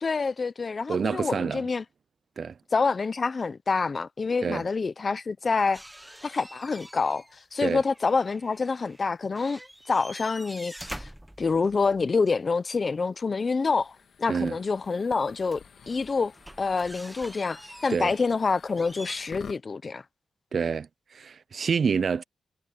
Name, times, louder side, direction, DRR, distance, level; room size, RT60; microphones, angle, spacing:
voice 1, 0.0-1.8 2.7-5.8 6.2-9.6 9.9-11.1 11.4-16.3 16.6-20.0, left 4 dB, 40° left, 0.6 m, -27 dB
voice 2, 0.9-1.7 2.4-2.5 4.4-4.6 7.6-7.8 14.3-14.6 17.9-18.1 20.5-22.2, right 6 dB, 60° right, 0.3 m, -27 dB
sound 1, 5.7-7.4 7.6-9.0 9.3-12.1 14.4-14.5 15.2-19.2, right 1 dB, 5° right, 0.9 m, -46 dB
sound 2, 13.5-19.6, left 7 dB, 75° left, 1.8 m, -49 dB
wide cardioid pair, 100°, 0 cm